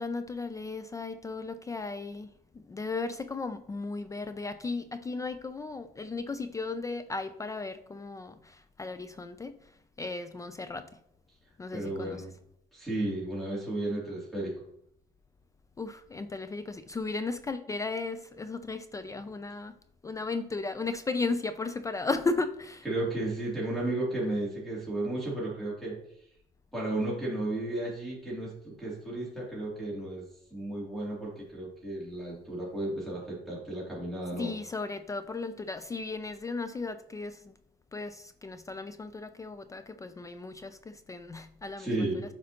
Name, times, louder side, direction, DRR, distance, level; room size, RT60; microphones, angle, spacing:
voice 1, 0.0-9.6 10.0-10.9 11.6-12.2 15.8-19.7 20.0-22.8 34.4-37.5 37.9-41.9, left 3 dB, 20° left, 11 dB, 0.3 m, -35 dB
voice 2, 11.7-12.3 12.7-14.5 22.8-25.9 26.7-30.2 30.5-34.5 41.8-42.2, right 2 dB, ahead, -7 dB, 2.7 m, -33 dB
7.4 x 5.1 x 2.8 m, 0.71 s
cardioid pair, 110°, 17 cm